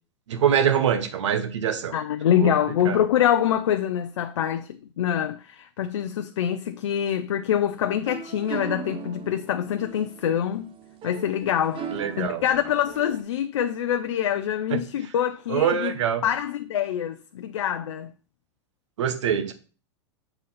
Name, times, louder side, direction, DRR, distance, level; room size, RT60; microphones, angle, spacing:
voice 1, 0.3-1.9 2.3-2.5 2.8-3.0 11.9-12.4 14.7-14.8 15.5-16.2 19.0-19.5, right 8 dB, 85° right, 1.2 m, -24 dB
voice 2, 1.9-4.7 5.0-10.7 11.0-18.1, left 10 dB, 90° left, 0.5 m, -25 dB
sound 1, 7.7-13.2, right 6 dB, 35° right, 0.9 m, -39 dB
7.0 x 3.9 x 5.7 m
hypercardioid pair, 115°, 15 cm